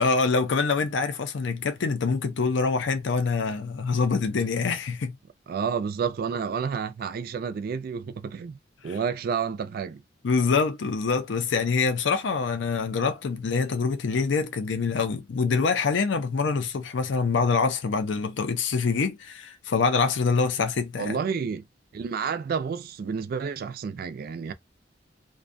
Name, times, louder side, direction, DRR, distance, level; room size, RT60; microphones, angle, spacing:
voice 1, 0.0-5.2 8.8-9.0 10.2-21.2, left 4 dB, 75° left, 0.5 m, -25 dB
voice 2, 5.5-8.6 8.8-10.0 21.0-21.6 21.9-24.5, right 6 dB, 55° right, 0.3 m, -30 dB
2.5 x 2.2 x 2.5 m
head